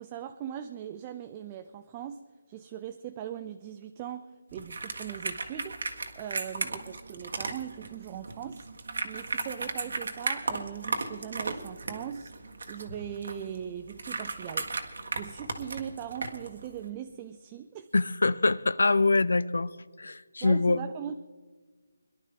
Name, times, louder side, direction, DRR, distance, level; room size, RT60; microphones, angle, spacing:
voice 1, 0.0-2.2 2.5-8.7 9.0-12.3 12.7-14.7 15.1-17.9 20.4-21.2, right 9 dB, 15° right, 8 dB, 0.4 m, -40 dB
sound 1, 4.5-16.9, right 3 dB, 60° right, 1.6 m, -36 dB
voice 2, 17.9-19.7 20.0-20.8, left 3 dB, 80° left, 19 dB, 0.5 m, -24 dB
22.0 x 11.5 x 3.7 m, 1.5 s
hypercardioid pair, 175°, 0 cm